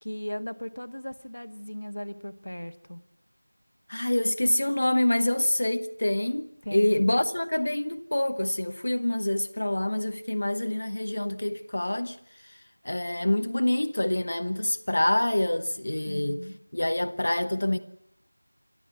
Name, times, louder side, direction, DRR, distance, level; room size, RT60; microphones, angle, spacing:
voice 1, 0.0-3.0 6.6-7.2 16.1-16.6, equal, 70° left, 1.5 m, -37 dB
voice 2, 3.9-12.2 12.4-12.5 12.8-16.4 16.7-17.8, left 1 dB, 35° left, 0.9 m, -26 dB
29.5 x 13.0 x 8.6 m
figure-of-eight pair, 175°, 0 cm